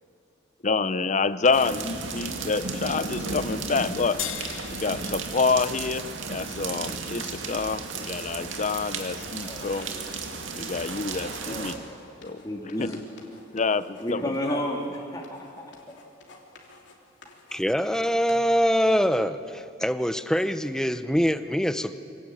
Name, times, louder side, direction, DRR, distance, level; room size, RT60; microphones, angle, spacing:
voice 1, 0.6-4.2 4.7-9.9 10.5-11.8 12.2-12.4 12.8-12.9 13.5-14.6, left 4 dB, 40° left, 15 dB, 0.6 m, -27 dB
sound 1, 1.5-11.8, right 4 dB, 80° right, 2.3 m, -34 dB
sound 2, 2.1-18.5, left 3 dB, 65° left, 3.2 m, -53 dB
sound 3, 4.2-6.8, left 12 dB, 85° left, 0.6 m, -39 dB
voice 2, 9.4-10.7 11.5-13.0 13.5-13.6 14.0-15.6, equal, 20° left, -1 dB, 2.1 m, -33 dB
voice 3, 17.5-22.0, equal, 5° left, 11 dB, 0.7 m, -24 dB
25.5 x 17.5 x 8.6 m, 2.6 s
head